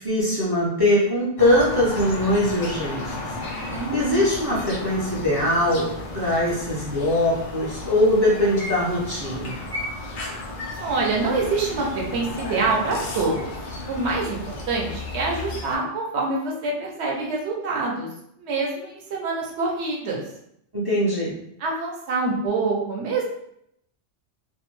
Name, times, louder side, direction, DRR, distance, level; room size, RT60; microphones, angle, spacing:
voice 1, 0.0-3.1 3.5-9.6 20.7-21.3, left 1 dB, 40° right, -8 dB, 0.3 m, -22 dB
sound 1, 1.4-15.8, left 2 dB, 60° left, 0.6 m, -34 dB
voice 2, 3.7-4.2 10.8-13.5 13.9-14.4 14.7-18.1 18.4-20.2 21.6-23.3, right 3 dB, 70° right, -2 dB, 0.9 m, -26 dB
2.6 x 2.1 x 3.0 m, 0.75 s
omnidirectional pair, 1.2 m